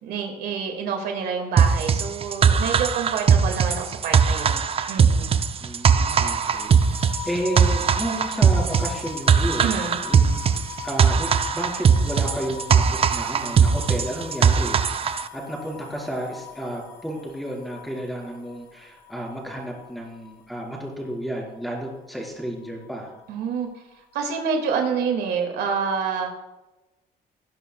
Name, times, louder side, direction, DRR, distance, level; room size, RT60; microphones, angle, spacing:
voice 1, 0.0-4.6 4.9-5.4 9.6-10.0 23.3-23.7 24.1-26.3, right 6 dB, 75° right, 3 dB, 2.1 m, -27 dB
sound 1, 1.6-15.3, right 6 dB, 35° right, 0.6 m, -20 dB
voice 2, 5.6-14.8 15.3-23.1, right 1 dB, ahead, -3 dB, 4.3 m, -32 dB
sound 2, 6.5-23.4 23.7-24.7, left 10 dB, 85° left, 2.2 m, -41 dB
19.0 x 10.5 x 2.3 m, 1.0 s
cardioid pair, 110°, 17 cm